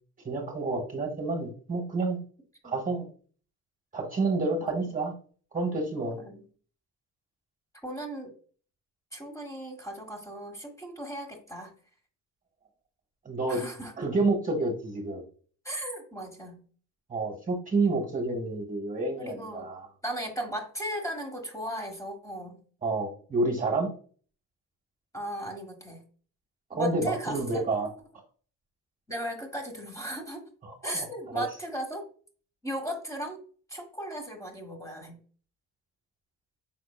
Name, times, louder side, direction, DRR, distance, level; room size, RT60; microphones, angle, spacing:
voice 1, 0.2-2.2 2.6-3.0 3.9-5.1 5.5-6.2 13.2-13.6 14.0-15.2 17.1-19.9 22.8-23.9 26.7-27.9 30.6-31.1 31.3-31.4, right 3 dB, 25° right, 2 dB, 1.2 m, -29 dB
voice 2, 7.8-8.3 9.1-11.7 13.5-13.9 15.6-16.6 19.2-19.7 20.0-22.6 25.1-26.0 26.7-27.6 29.1-30.5 30.8-32.0 32.6-33.4 33.7-35.2, right 1 dB, 10° left, 2 dB, 1.4 m, -36 dB
5.6 x 3.8 x 2.3 m, 0.43 s
cardioid pair, 80°, 34 cm